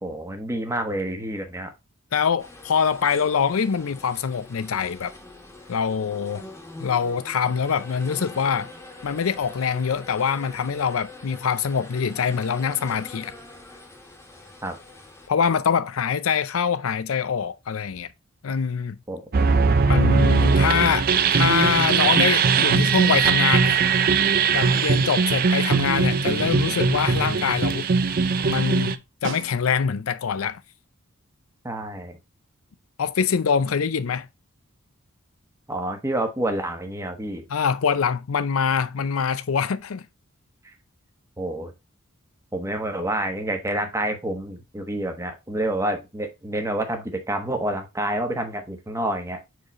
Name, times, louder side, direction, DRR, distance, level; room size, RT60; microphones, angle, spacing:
voice 1, 0.0-1.7 14.6-14.8 19.1-19.2 31.6-32.2 35.7-37.4 41.4-41.7 42.5-49.4, right 1 dB, 15° right, 1.2 m, -28 dB
voice 2, 2.1-5.1 5.7-6.4 6.8-8.7 9.0-13.3 15.3-18.1 18.4-19.0 19.8-21.1 21.3-23.8 24.5-27.9 28.4-30.6 33.0-34.3 37.5-40.1, left 6 dB, 85° left, 0.5 m, -24 dB
sound 1, 2.4-15.3, left 2 dB, 15° left, 1.5 m, -44 dB
sound 2, 19.3-28.9, right 5 dB, 45° right, 0.5 m, -20 dB
Snare drum, 29.2-30.2 34.6-34.7, right 4 dB, 65° right, 0.9 m, -36 dB
4.9 x 4.8 x 4.2 m
head